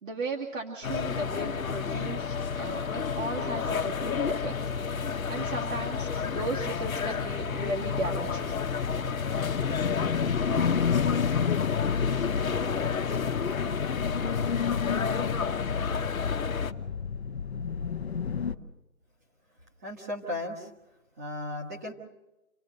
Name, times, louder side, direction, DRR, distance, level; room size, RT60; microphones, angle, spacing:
voice 1, 0.0-4.5 5.3-8.5, right 2 dB, 65° right, -1 dB, 2.5 m, -36 dB
sound 1, 0.8-16.7, left 6 dB, 75° left, 1.3 m, -30 dB
sound 2, 7.8-18.6, left 6 dB, 50° left, 1.1 m, -33 dB
voice 2, 19.8-20.7 21.2-21.9, left 1 dB, 10° right, 0 dB, 1.3 m, -35 dB
28.0 x 17.0 x 6.6 m, 1.0 s
hypercardioid pair, 170°, 41 cm